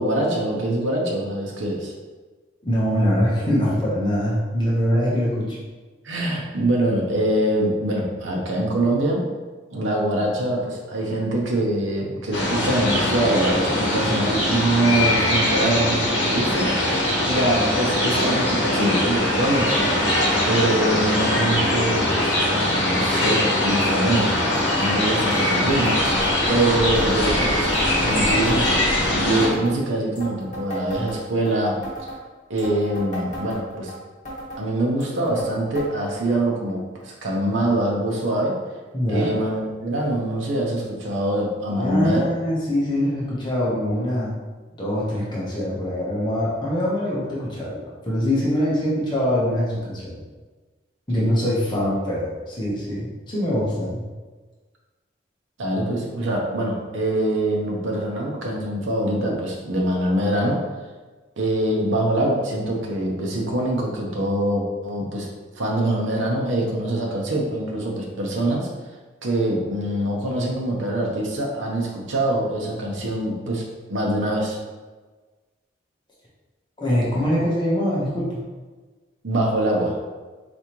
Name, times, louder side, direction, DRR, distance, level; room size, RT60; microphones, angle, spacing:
voice 1, 0.0-1.9 6.0-9.3 9.7-20.0 20.5-24.4 24.8-26.0 26.5-27.7 28.0-28.7 29.0-32.1 32.5-33.9 34.6-38.6 39.1-42.2 55.6-60.6 61.4-65.3 65.6-68.7 69.2-74.6 79.2-80.0, right 1 dB, 85° right, -1 dB, 0.8 m, -24 dB
voice 2, 2.6-5.6 38.9-39.3 41.8-44.4 44.8-50.2 51.1-54.0 76.8-78.4, equal, 25° left, -7 dB, 1.0 m, -23 dB
sound 1, 12.3-29.5, left 1 dB, 65° left, 1.0 m, -21 dB
sound 2, 23.8-23.9 24.2-24.3 24.5-24.9 25.3-26.7 27.0-27.3 27.7-29.1 29.4-29.8 30.1-31.5 31.8-32.2 32.6-33.9 34.2-34.6 35.0-35.5 35.7-35.9 36.1-36.2 37.0-37.1 37.9-38.0, equal, 40° left, 1.4 m, -35 dB
4.2 x 3.4 x 3.0 m, 1.3 s
head